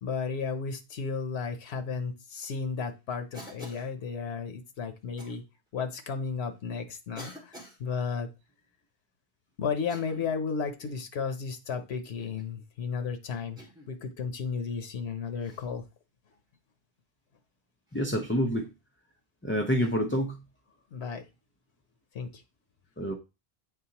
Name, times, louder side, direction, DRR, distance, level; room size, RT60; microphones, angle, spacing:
voice 1, 0.0-5.4 5.7-8.3 9.6-13.6 13.9-15.8 20.9-21.2 22.1-22.4, left 5 dB, 85° left, 7 dB, 1.0 m, -33 dB
Cough, 3.3-3.9 5.2-5.4 6.3-6.4 7.1-7.8 9.8-10.4 10.8-11.1 12.2-12.5 13.6-13.9 15.4-15.7 17.9-18.0 19.7-19.9, equal, 5° right, 2.1 m, -48 dB
voice 2, 17.9-18.7 19.4-20.4 23.0-23.1, equal, 15° left, 2 dB, 0.5 m, -27 dB
8.8 x 3.8 x 2.9 m, 0.27 s
omnidirectional pair, 1.1 m